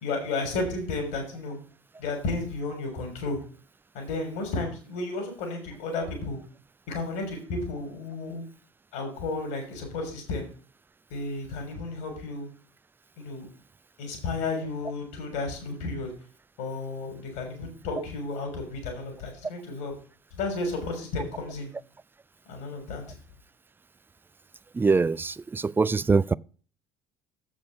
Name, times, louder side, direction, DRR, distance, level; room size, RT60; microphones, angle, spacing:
voice 1, 0.0-1.6 2.0-3.4 3.9-6.4 6.9-8.4 8.9-10.5 11.1-12.5 13.2-13.5 14.0-16.1 16.6-19.9 20.4-21.7 22.5-23.0, left 3 dB, 65° left, 3.6 m, -32 dB
voice 2, 24.7-26.3, right 4 dB, 15° right, 0.3 m, -23 dB
7.5 x 6.2 x 6.5 m
hypercardioid pair, 60°, 15 cm